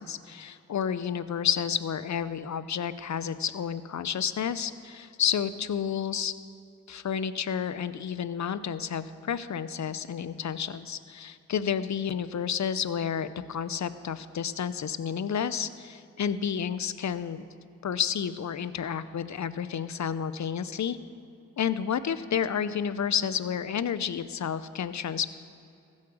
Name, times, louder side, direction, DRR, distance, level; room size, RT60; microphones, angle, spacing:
voice 1, 0.0-6.3 6.9-17.4 17.8-21.0 21.6-25.2, left 8 dB, 55° left, 14 dB, 0.7 m, -30 dB
15.0 x 7.4 x 6.3 m, 2.7 s
cardioid pair, 50°, 35 cm